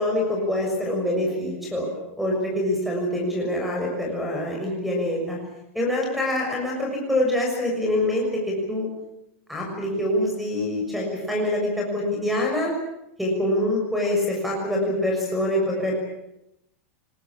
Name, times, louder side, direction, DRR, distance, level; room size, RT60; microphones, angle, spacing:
voice 1, 0.0-1.9 2.2-5.4 5.7-8.9 9.5-12.7 13.2-16.0, left 1 dB, ahead, 0 dB, 6.4 m, -25 dB
25.5 x 21.0 x 8.7 m, 0.84 s
supercardioid pair, 170°, 7 cm